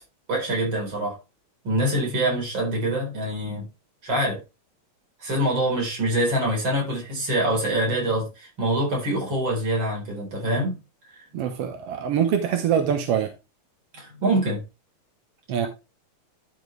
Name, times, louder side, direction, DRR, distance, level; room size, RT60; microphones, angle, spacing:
voice 1, 0.3-1.2 1.6-3.7 4.0-4.4 5.2-10.8 11.1-11.2 13.9-14.6, right 1 dB, 35° right, 4.6 m, -25 dB
voice 2, 11.3-13.3 15.5-15.7, right 8 dB, 65° right, 1.6 m, -24 dB
12.0 x 5.7 x 3.3 m
omnidirectional pair, 3.9 m